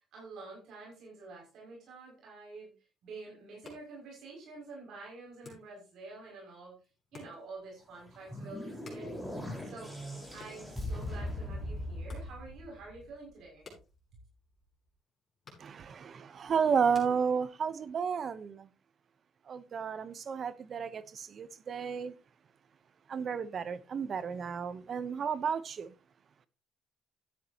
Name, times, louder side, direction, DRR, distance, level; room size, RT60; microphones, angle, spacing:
voice 1, 0.1-2.7 3.0-6.7 7.1-9.1 9.6-9.9 10.3-13.6, right 3 dB, 65° right, 6.2 m, -48 dB
sound 1, 3.4-17.9, left 4 dB, 30° left, 6.0 m, -59 dB
sound 2, 7.9-13.2, left 1 dB, 5° right, 4.7 m, -40 dB
voice 2, 15.6-18.7 19.5-22.1 23.1-25.9, right 6 dB, 40° right, 0.9 m, -32 dB
13.0 x 10.0 x 2.9 m
cardioid pair, 130°, 0 cm